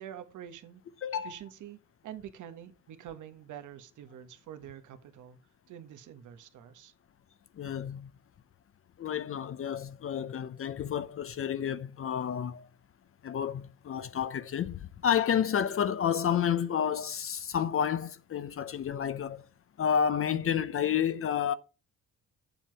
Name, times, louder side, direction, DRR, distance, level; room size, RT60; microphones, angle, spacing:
voice 1, 0.0-0.8 1.2-5.4 5.7-6.9, right 10 dB, 80° right, 1.3 m, -46 dB
voice 2, 1.0-1.4 7.6-8.1 9.0-12.7 13.2-19.5 19.8-21.5, left 8 dB, 45° left, 0.7 m, -30 dB
7.6 x 7.1 x 4.6 m
cardioid pair, 90°, 30 cm